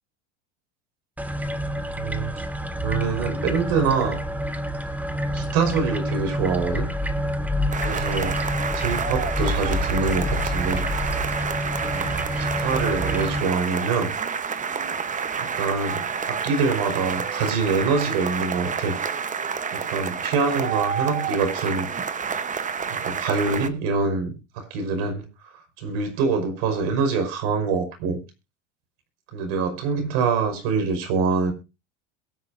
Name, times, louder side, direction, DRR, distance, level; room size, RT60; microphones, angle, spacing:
sound 1, 1.2-13.4, equal, 5° right, 1.4 m, -28 dB
voice 1, 2.0-2.3 2.8-4.2 5.3-6.9 7.8-8.4 8.8-10.9 11.8-14.1 15.6-19.0 19.7-21.9 22.9-25.3 25.8-28.2 29.3-31.5, right 5 dB, 65° right, 5.6 m, -25 dB
sound 2, 7.7-23.7, right 6 dB, 20° right, 1.1 m, -29 dB
22.0 x 9.6 x 2.7 m
supercardioid pair, 110°, 38 cm